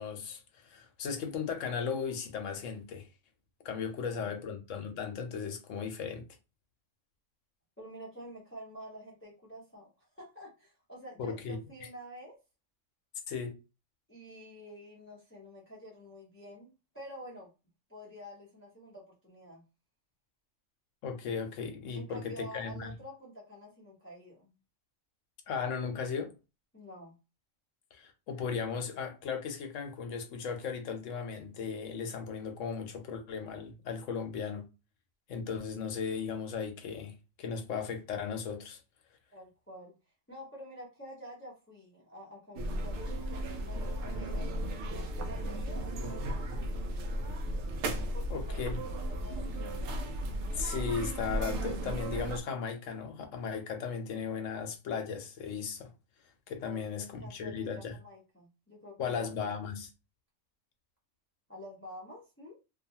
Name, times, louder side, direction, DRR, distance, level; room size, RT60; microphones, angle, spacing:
voice 1, 0.0-3.1 3.6-6.2 11.2-11.6 13.3-13.5 21.0-22.9 25.5-26.3 27.9-34.7 35.3-38.8 48.3-48.8 50.6-55.9 56.5-57.9 59.0-59.9, left 6 dB, 80° left, 1.1 m, -36 dB
voice 2, 7.8-9.9 10.2-12.4 14.1-17.5 17.9-19.6 21.9-24.5 26.7-27.2 39.3-39.9 40.3-47.2 48.1-49.6 56.6-59.5 61.5-62.6, equal, 10° left, 0.7 m, -49 dB
sound 1, 42.6-52.4, right 1 dB, 70° right, 0.8 m, -35 dB
2.7 x 2.4 x 2.7 m
omnidirectional pair, 1.3 m